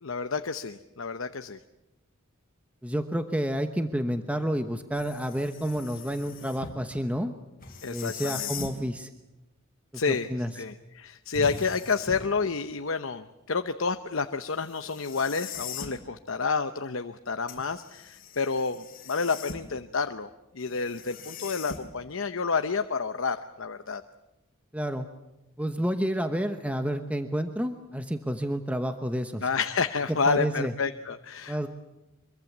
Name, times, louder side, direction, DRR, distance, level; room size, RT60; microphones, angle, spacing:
voice 1, 0.0-1.6 7.8-8.5 9.9-10.3 10.6-20.3 20.5-24.0 29.4-31.7, left 4 dB, 65° left, 9 dB, 0.9 m, -29 dB
voice 2, 2.8-7.3 7.9-9.1 9.9-10.5 24.7-25.1 25.6-29.5 30.3-30.7 31.5-31.7, equal, 5° right, 7 dB, 1.0 m, -30 dB
sound 1, 4.9-6.8 7.6-8.8 11.3-12.4 14.6-16.0 17.5-19.8 20.6-22.1, left 5 dB, 45° left, 3.8 m, -40 dB
25.0 x 23.0 x 7.3 m, 0.98 s
head